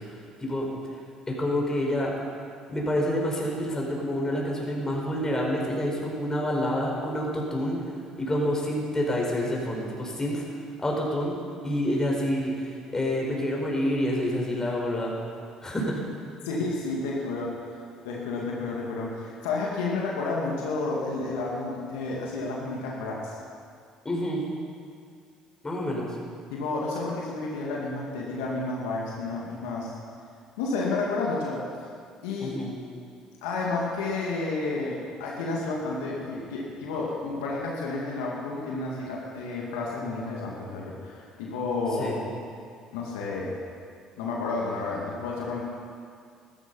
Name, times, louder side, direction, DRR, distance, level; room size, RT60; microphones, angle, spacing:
voice 1, 0.1-0.7 1.3-2.1 2.7-7.8 8.2-10.4 10.8-11.4 11.6-15.1 15.6-16.0 24.0-24.4 25.6-26.1 32.4-32.8 42.0-42.2, equal, 25° left, -1 dB, 5.0 m, -28 dB
voice 2, 16.4-17.8 18.0-23.4 26.5-29.9 30.6-31.6 32.2-32.6 33.4-42.2 42.9-43.6 44.2-45.6, left 3 dB, 80° left, -3 dB, 2.1 m, -31 dB
15.0 x 13.5 x 5.6 m, 2.3 s
hypercardioid pair, 60°, 2 cm